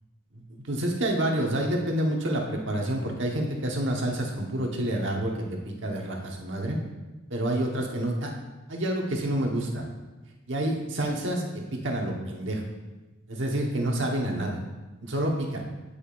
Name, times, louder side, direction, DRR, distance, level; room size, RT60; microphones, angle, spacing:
voice 1, 0.3-5.3 5.6-6.8 7.3-8.3 8.7-9.9 10.5-11.4 11.8-12.6 13.3-14.6 15.0-15.6, right 1 dB, 60° right, 0 dB, 1.3 m, -28 dB
8.5 x 8.4 x 2.5 m, 1.1 s
head